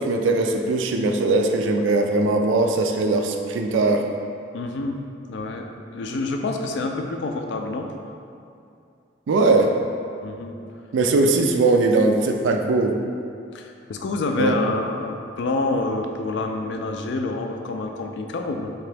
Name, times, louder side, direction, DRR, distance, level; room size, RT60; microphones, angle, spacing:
voice 1, 0.0-4.0 9.3-9.7 10.9-12.9 14.4-14.6, right 3 dB, 75° right, 4 dB, 0.3 m, -20 dB
voice 2, 4.5-5.7 5.9-7.9 10.2-10.6 13.5-18.7, left 2 dB, 60° left, 3 dB, 0.3 m, -27 dB
3.7 x 2.9 x 3.3 m, 2.5 s
head